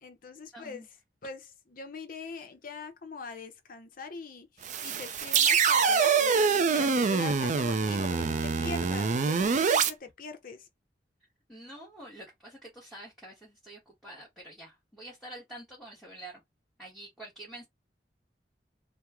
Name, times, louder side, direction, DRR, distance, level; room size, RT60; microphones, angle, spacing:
voice 1, 0.0-0.8 1.2-6.4 6.7-10.7, left 4 dB, 55° left, 0.7 m, -42 dB
voice 2, 0.5-0.9 7.1-7.3 11.5-16.4 16.8-17.7, right 1 dB, ahead, 1.0 m, -47 dB
sound 1, 4.6-9.9, right 5 dB, 45° right, 0.4 m, -25 dB
3.0 x 2.0 x 3.5 m
head